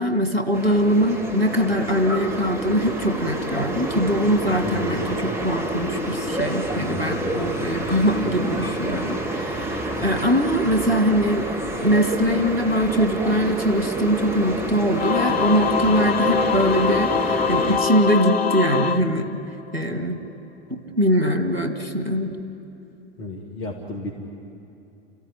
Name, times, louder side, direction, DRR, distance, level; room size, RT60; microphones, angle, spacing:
voice 1, 0.0-11.5 11.8-19.4 19.7-20.2 20.7-22.3, equal, 90° right, 6 dB, 1.9 m, -22 dB
sound 1, 0.5-17.8, right 1 dB, 10° right, 2.3 m, -28 dB
voice 2, 4.7-5.3 6.7-7.6 23.2-24.1, left 2 dB, 65° left, -1 dB, 2.7 m, -35 dB
Singing / Musical instrument, 14.9-19.8, left 6 dB, 85° left, 0.7 m, -23 dB
29.0 x 15.0 x 9.8 m, 2.8 s
figure-of-eight pair, 80°, 30 cm